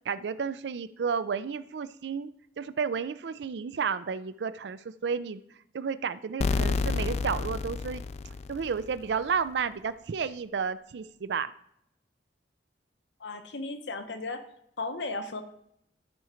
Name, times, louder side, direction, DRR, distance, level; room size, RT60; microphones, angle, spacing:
voice 1, 0.1-2.3 2.6-5.4 5.7-8.0 8.5-11.5, right 6 dB, 70° right, 15 dB, 0.4 m, -32 dB
sound 1, 6.4-9.1, left 4 dB, 40° left, 0.3 m, -30 dB
voice 2, 13.2-14.4 14.8-15.4, left 3 dB, 75° left, 8 dB, 0.9 m, -35 dB
12.0 x 5.0 x 4.4 m, 0.74 s
head